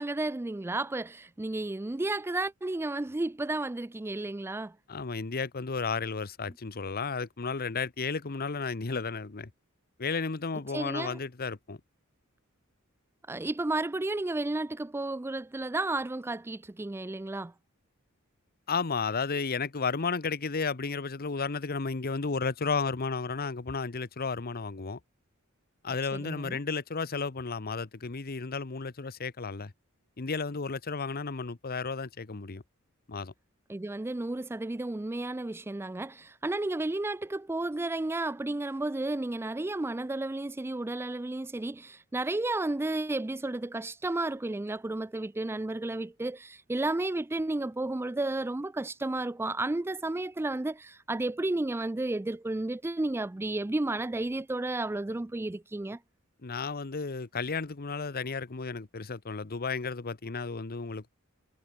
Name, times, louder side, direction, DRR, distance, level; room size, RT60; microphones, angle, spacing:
voice 1, 0.0-4.8 10.7-11.2 13.3-17.5 26.1-26.6 33.7-56.0, right 2 dB, 10° right, 0.4 m, -32 dB
voice 2, 4.9-9.5 10.0-11.8 18.7-25.0 25.8-29.7 30.2-32.6 33.1-33.3 56.4-61.1, left 4 dB, 45° left, 0.9 m, -33 dB
head